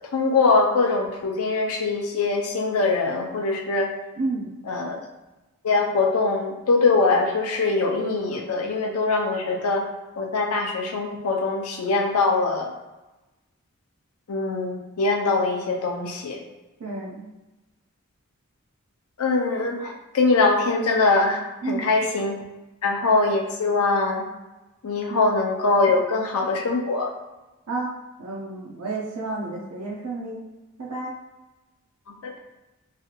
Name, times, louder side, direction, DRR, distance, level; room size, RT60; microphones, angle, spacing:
voice 1, 0.1-3.9 4.7-5.0 5.6-9.8 10.2-12.7 14.3-16.4 19.2-22.4 22.8-24.3 24.8-27.1 32.2-32.4, left 3 dB, 80° left, 1 dB, 0.5 m, -22 dB
voice 2, 4.2-4.5 16.8-17.3 21.6-21.8 25.1-25.2 27.7-27.9 28.2-30.4 30.8-31.1, right 3 dB, 85° right, -3 dB, 0.5 m, -30 dB
3.1 x 2.4 x 2.9 m, 1.1 s
head